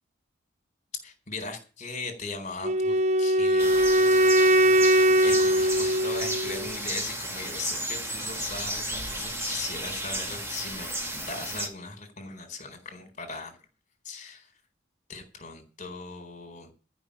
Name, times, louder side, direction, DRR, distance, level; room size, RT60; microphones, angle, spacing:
voice 1, 1.0-3.7 4.1-4.8 5.2-13.6 14.0-14.5 15.1-16.7, left 4 dB, 35° left, 5 dB, 4.1 m, -39 dB
Wind instrument woodwind instrument, 2.6-6.7, right 1 dB, 35° right, 0.6 m, -21 dB
sound 1, 3.6-11.7, right 1 dB, 15° right, 2.3 m, -33 dB
13.5 x 6.1 x 8.6 m, 0.35 s
head